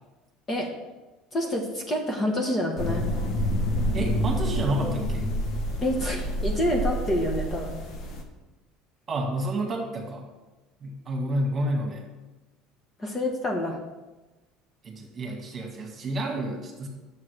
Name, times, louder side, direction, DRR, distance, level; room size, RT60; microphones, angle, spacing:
voice 1, 1.3-3.1 5.8-7.8 13.0-13.8, left 1 dB, 20° left, 1 dB, 1.2 m, -27 dB
sound 1, 2.8-8.2, equal, 50° left, 1.3 m, -28 dB
voice 2, 3.9-5.3 9.1-10.3 10.8-12.1 14.8-16.9, right 1 dB, 25° right, 1 dB, 1.9 m, -30 dB
11.0 x 7.4 x 3.3 m, 1.1 s
cardioid pair, 150°, 0 cm